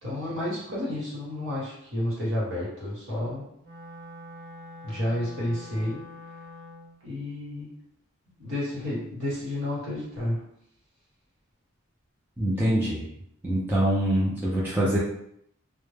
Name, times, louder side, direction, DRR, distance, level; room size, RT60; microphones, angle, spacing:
voice 1, 0.0-3.4 4.8-6.0 7.0-7.7 8.4-10.4, left 1 dB, 60° right, -7 dB, 1.2 m, -31 dB
Wind instrument woodwind instrument, 3.6-7.0, left 1 dB, 85° right, 0.9 m, -44 dB
voice 2, 12.4-13.0 13.4-15.0, right 1 dB, 10° right, -8 dB, 0.4 m, -24 dB
2.1 x 2.1 x 3.2 m, 0.72 s
head